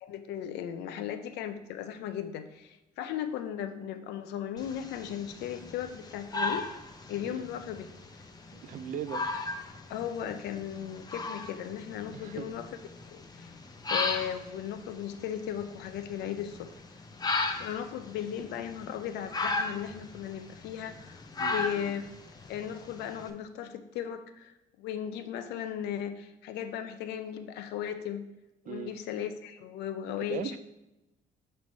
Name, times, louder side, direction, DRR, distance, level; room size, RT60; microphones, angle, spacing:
voice 1, 0.0-6.7 7.1-7.9 9.9-12.7 13.1-13.5 13.9-16.7 17.2-17.3 17.6-21.2 21.5-22.0 22.5-28.3 28.6-30.6, left 9 dB, 85° left, 9 dB, 0.6 m, -36 dB
sound 1, 4.6-23.3, left 3 dB, 25° left, 0.7 m, -37 dB
voice 2, 8.5-9.2 12.1-12.5 21.4-21.6 28.7-29.0 30.3-30.6, right 9 dB, 50° right, 13 dB, 0.4 m, -38 dB
6.0 x 3.2 x 5.3 m, 0.96 s
cardioid pair, 110°, 17 cm